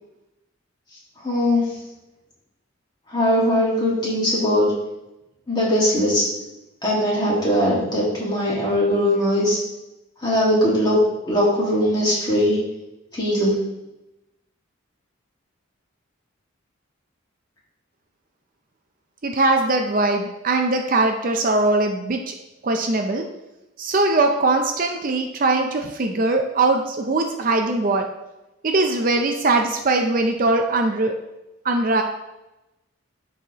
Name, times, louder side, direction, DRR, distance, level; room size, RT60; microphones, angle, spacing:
voice 1, 1.2-1.6 3.1-4.7 5.5-6.2 6.8-9.6 10.2-11.0 11.3-12.6 13.1-13.5, equal, 20° left, -6 dB, 2.1 m, -20 dB
voice 2, 19.2-22.3 22.6-23.2 23.8-28.0 28.6-31.1 31.6-32.0, right 2 dB, 40° right, 4 dB, 0.5 m, -21 dB
12.0 x 4.1 x 3.0 m, 0.96 s
head